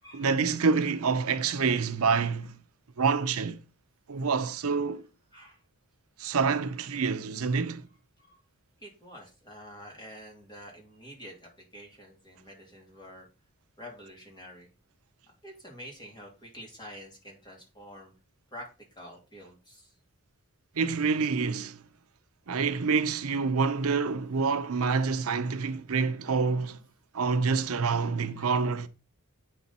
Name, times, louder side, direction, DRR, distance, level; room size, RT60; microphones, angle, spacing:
voice 1, 0.1-2.6 3.0-3.6 4.1-5.0 6.2-7.9 20.8-21.8 22.5-26.8 27.1-28.9, right 5 dB, 80° right, 0.6 m, -27 dB
voice 2, 5.3-5.6 8.2-8.4 8.8-13.3 13.8-14.7 15.4-18.1 18.5-18.7 18.9-19.9 28.3-28.5, equal, 20° left, 2.6 m, -47 dB
8.1 x 5.6 x 4.1 m
head